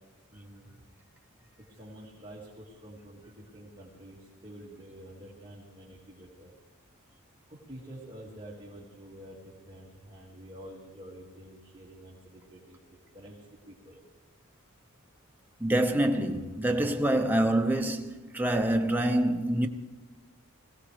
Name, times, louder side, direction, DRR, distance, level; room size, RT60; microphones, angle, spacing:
voice 1, 0.3-0.7 1.8-6.5 7.5-12.8 13.1-13.4 13.7-14.0, right 1 dB, 25° right, 2.1 m, -48 dB
voice 2, 15.6-19.7, right 1 dB, 10° right, 0.8 m, -26 dB
21.5 x 16.5 x 3.3 m
head